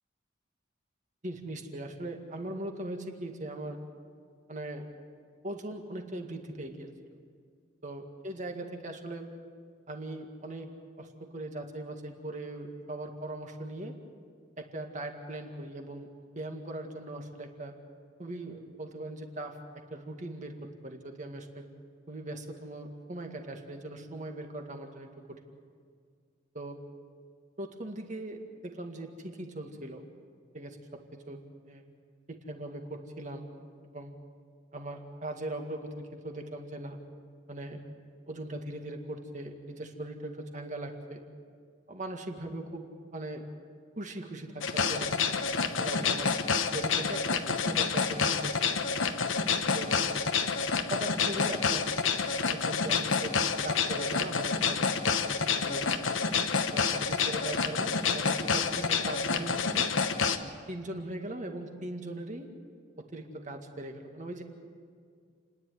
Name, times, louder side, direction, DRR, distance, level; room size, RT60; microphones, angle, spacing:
voice 1, 1.2-3.8 4.5-4.8 5.4-6.9 7.8-9.3 9.9-10.7 11.0-13.9 14.6-16.1 16.4-17.7 18.2-19.6 19.9-20.6 20.8-21.6 22.1-25.4 26.5-26.8 27.6-30.1 30.5-30.8 31.3-31.4 31.7-31.8 32.3-33.5 33.9-34.2 34.7-37.0 37.5-37.8 38.3-41.2 41.9-42.9 43.1-43.4 44.0-45.1 45.6-46.4 46.7-48.5 49.7-50.0 50.9-51.9 52.5-53.4 53.6-55.8 56.7-59.9 60.7-62.5 63.0-64.4, right 1 dB, 40° right, 4 dB, 2.0 m, -40 dB
sound 1, 44.6-60.4, left 5 dB, 85° left, 1.1 m, -28 dB
29.5 x 10.5 x 9.4 m, 2.1 s
head